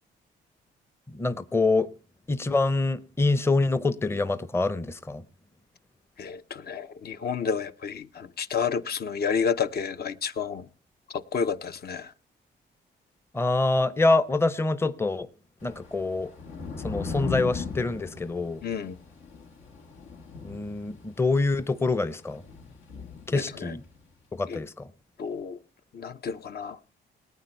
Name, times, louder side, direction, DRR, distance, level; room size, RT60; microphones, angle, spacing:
voice 1, 1.1-1.9 2.3-5.2 13.3-15.3 15.6-16.3 16.8-18.6 20.4-22.4 23.3-23.8 24.4-24.9, left 3 dB, 10° left, 0.6 m, -25 dB
voice 2, 6.2-10.7 11.1-12.1 18.6-18.9 23.3-23.7 24.5-24.6 25.2-25.6 25.9-26.8, left 6 dB, 50° left, 0.7 m, -30 dB
Thunder / Rain, 15.6-24.0, left 5 dB, 85° left, 2.1 m, -39 dB
19.0 x 9.0 x 4.5 m
cardioid pair, 90°, 20 cm